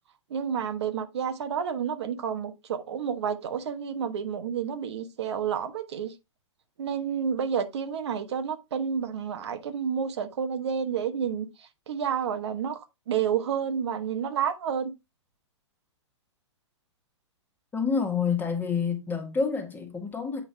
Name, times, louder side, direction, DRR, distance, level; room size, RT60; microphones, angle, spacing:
voice 1, 0.3-6.1 6.8-14.9, right 7 dB, 60° right, 1.2 m, -30 dB
voice 2, 17.7-20.4, left 5 dB, 10° left, 1.7 m, -28 dB
8.4 x 5.2 x 3.3 m
hypercardioid pair, 115°, 16 cm